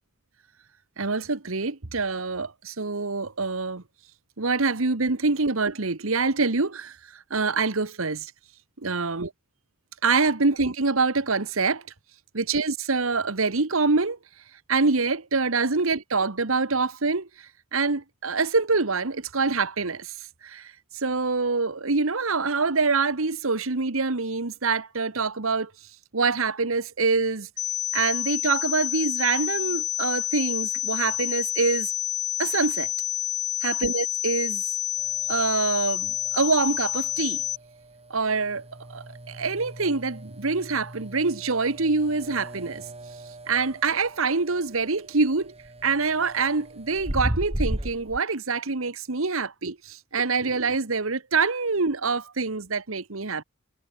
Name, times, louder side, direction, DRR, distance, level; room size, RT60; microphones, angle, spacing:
voice 1, 1.0-3.8 4.4-8.3 8.8-9.3 10.0-11.8 12.3-14.2 14.7-25.7 26.1-27.5 27.9-31.9 32.4-32.9 33.6-34.6 35.3-37.4 38.1-38.6 38.9-42.8 43.5-45.5 45.8-53.4, right 4 dB, 70° right, 1.4 m, -25 dB
sound 1, 27.6-37.6, left 15 dB, 55° left, 1.4 m, -28 dB
sound 2, 35.0-48.2, right 1 dB, 30° right, 2.5 m, -37 dB
head